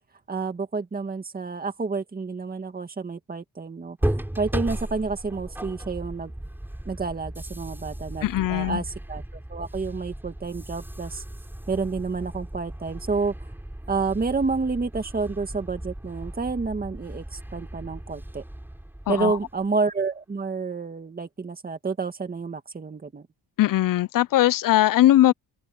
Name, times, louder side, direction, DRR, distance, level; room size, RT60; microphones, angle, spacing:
voice 1, 0.3-6.3 6.9-9.2 9.5-11.2 11.7-13.3 13.9-18.4 19.1-23.3, right 4 dB, 20° right, 2.0 m, -29 dB
sound 1, 4.0-19.7, right 1 dB, 5° right, 4.9 m, -35 dB
voice 2, 8.2-8.8 19.1-19.4 23.6-25.3, left 14 dB, 55° left, 0.5 m, -20 dB
cardioid pair, 135°, 40 cm